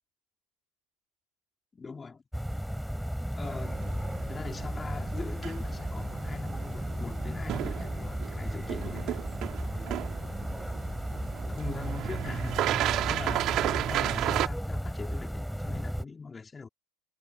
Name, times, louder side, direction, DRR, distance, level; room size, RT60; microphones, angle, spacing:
voice 1, 1.7-2.2 3.3-3.8 4.3-9.2 9.6-10.0 11.5-16.7, left 4 dB, 20° left, 3.5 m, -42 dB
sound 1, 2.3-16.0, equal, ahead, 4.2 m, -35 dB
sound 2, 3.4-14.5, right 14 dB, 45° right, 4.9 m, -34 dB
figure-of-eight pair, 75°, 0 cm